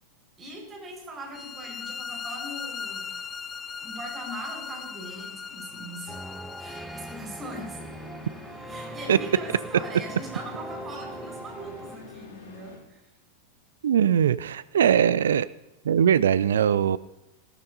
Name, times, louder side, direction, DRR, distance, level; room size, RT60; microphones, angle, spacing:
voice 1, 0.4-3.1 3.8-6.2 6.6-7.8 8.7-13.0, right 1 dB, 20° right, -1 dB, 5.0 m, -40 dB
sound 1, 1.3-7.2, left 6 dB, 20° left, 0.5 m, -38 dB
sound 2, 6.1-12.0, right 1 dB, 5° right, 0.8 m, -40 dB
sound 3, 7.8-12.8, left 4 dB, 55° left, 3.1 m, -46 dB
voice 2, 13.8-15.5 15.9-17.0, right 8 dB, 65° right, 17 dB, 0.3 m, -21 dB
17.5 x 13.5 x 2.7 m, 0.99 s
figure-of-eight pair, 90°, 0 cm